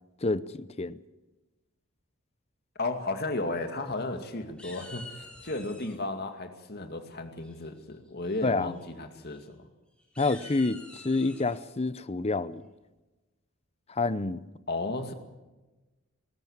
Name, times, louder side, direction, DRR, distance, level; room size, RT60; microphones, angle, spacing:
voice 1, 0.2-1.0 8.4-8.7 10.2-12.6 13.9-14.4, left 3 dB, 30° left, 0.7 m, -28 dB
voice 2, 2.8-9.7 14.7-15.1, left 2 dB, 50° left, 2.3 m, -34 dB
sound 1, 3.6-4.2 4.6-6.0 7.4-7.8 8.2-8.5 8.7-8.9 9.2-9.4 10.0-11.6, left 2 dB, 5° left, 4.2 m, -48 dB
19.5 x 18.0 x 7.3 m
head